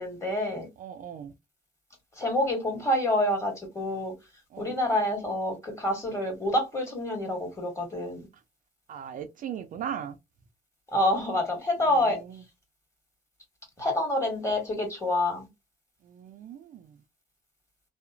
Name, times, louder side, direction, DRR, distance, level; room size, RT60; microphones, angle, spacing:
voice 1, 0.0-0.7 2.2-4.1 4.6-8.3 10.9-12.2 13.8-15.5, left 1 dB, 15° left, 1.7 m, -27 dB
voice 2, 0.8-1.3 4.5-4.7 8.9-10.2 11.9-12.4 16.0-17.0, right 9 dB, 50° right, 0.4 m, -38 dB
2.8 x 2.1 x 2.4 m
cardioid pair, 110°, 17 cm